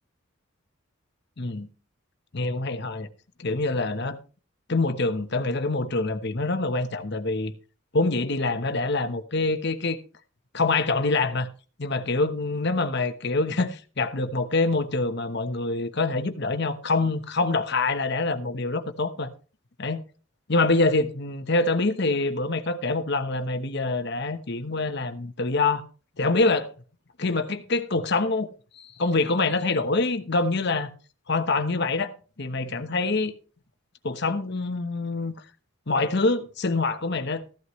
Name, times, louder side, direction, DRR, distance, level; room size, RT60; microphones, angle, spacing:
voice 1, 1.4-1.7 2.3-3.1 3.4-4.2 4.7-7.5 7.9-10.0 10.5-11.5 11.8-19.3 19.8-20.0 20.5-25.8 26.2-26.7 27.2-28.5 28.8-30.9 31.3-32.1 32.4-33.3 34.0-35.3 35.9-37.4, left 3 dB, 50° left, 1.0 m, -25 dB
14.5 x 11.0 x 3.1 m
head